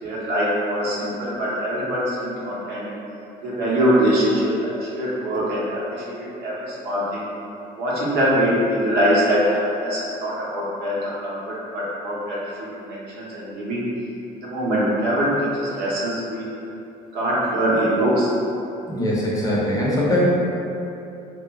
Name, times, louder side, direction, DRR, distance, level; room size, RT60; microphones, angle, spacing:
voice 1, 0.0-2.9 3.4-7.3 7.8-13.8 14.3-16.5 17.1-18.3, equal, 75° right, -7 dB, 0.8 m, -23 dB
voice 2, 18.9-20.3, left 1 dB, 20° left, -6 dB, 0.6 m, -21 dB
2.9 x 2.4 x 2.2 m, 2.8 s
cardioid pair, 110°, 17 cm